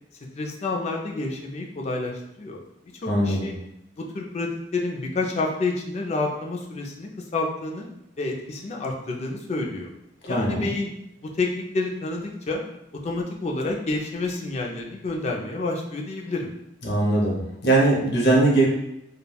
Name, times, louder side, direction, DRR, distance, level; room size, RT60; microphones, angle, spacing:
voice 1, 0.4-2.6 3.0-3.6 4.0-7.9 8.2-9.9 10.3-10.9 11.2-12.6 13.0-16.5, left 3 dB, 35° left, 0 dB, 0.4 m, -29 dB
voice 2, 3.1-3.5 10.3-10.7 16.8-18.7, right 2 dB, 55° left, -3 dB, 0.7 m, -21 dB
3.2 x 2.2 x 2.3 m, 0.84 s
head